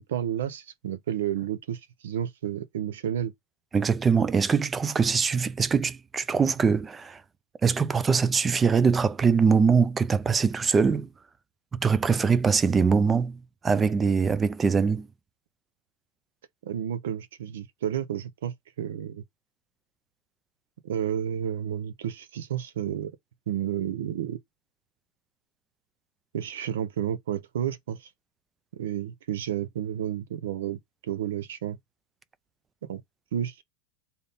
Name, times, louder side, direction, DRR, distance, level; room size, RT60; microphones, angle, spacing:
voice 1, 0.0-3.3 16.6-19.2 20.8-23.1 23.5-24.4 26.3-28.1 28.7-31.8 32.9-33.0 33.3-33.6, right 10 dB, 85° right, 0.7 m, -31 dB
voice 2, 3.7-7.2 7.6-11.1 11.7-15.1, right 5 dB, 15° right, 0.3 m, -23 dB
3.5 x 2.7 x 4.0 m
supercardioid pair, 160°, 0 cm